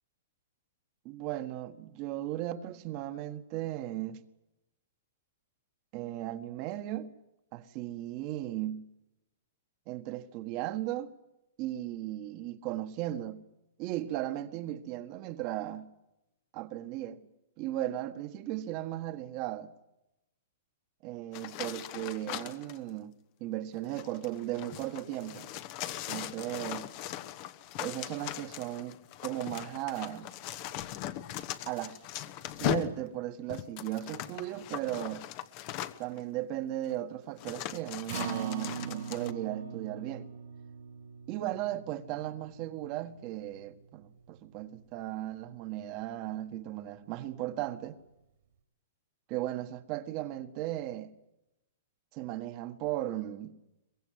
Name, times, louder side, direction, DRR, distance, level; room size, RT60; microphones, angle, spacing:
voice 1, 1.1-4.2 5.9-7.1 7.5-8.8 9.9-11.1 11.6-13.4 13.8-15.9 16.5-17.2 17.6-19.7 21.0-23.2 23.4-25.5 26.1-26.9 27.8-29.0 29.2-30.3 31.7-32.0 32.6-35.3 36.0-40.3 41.3-48.0 49.3-51.1 52.1-53.5, right 14 dB, 40° right, 1.7 m, -36 dB
sound 1, 21.3-22.8 23.8-36.2 36.9-37.0 37.4-39.3, left 12 dB, 45° left, 1.2 m, -39 dB
Acoustic guitar, 38.1-44.4 44.8-44.9 45.3-45.4, right 7 dB, 65° right, 2.9 m, -42 dB
23.5 x 21.5 x 7.9 m
hypercardioid pair, 120°, 0 cm